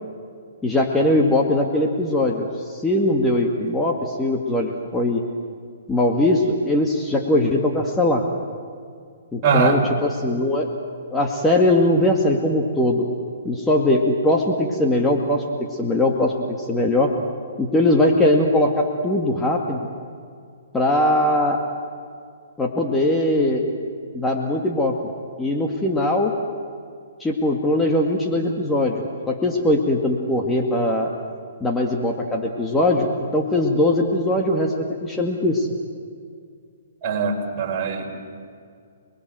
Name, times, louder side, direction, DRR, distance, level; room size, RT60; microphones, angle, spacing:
voice 1, 0.6-5.2 5.9-8.3 9.3-10.7 11.1-13.1 13.4-17.1 17.6-19.8 20.7-21.6 22.6-23.7 24.1-25.0 25.4-26.3 27.2-31.1 31.6-35.7, left 1 dB, 10° left, 1 dB, 2.2 m, -20 dB
voice 2, 9.4-9.9 37.0-38.1, right 5 dB, 35° right, 0 dB, 5.0 m, -21 dB
29.5 x 21.5 x 7.9 m, 2.2 s
hypercardioid pair, 140°, 0 cm